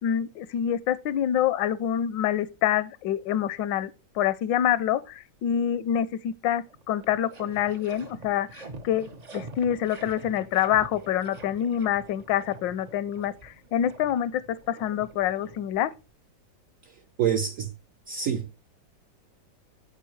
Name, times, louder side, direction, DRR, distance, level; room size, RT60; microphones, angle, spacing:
voice 1, 0.0-15.9, left 10 dB, 80° left, 1.3 m, -26 dB
sound 1, 6.3-6.4 6.7-16.1, right 3 dB, 85° right, 0.3 m, -46 dB
voice 2, 16.8-17.7 18.1-18.5, right 8 dB, 70° right, 0.7 m, -27 dB
8.3 x 7.5 x 3.1 m
omnidirectional pair, 2.0 m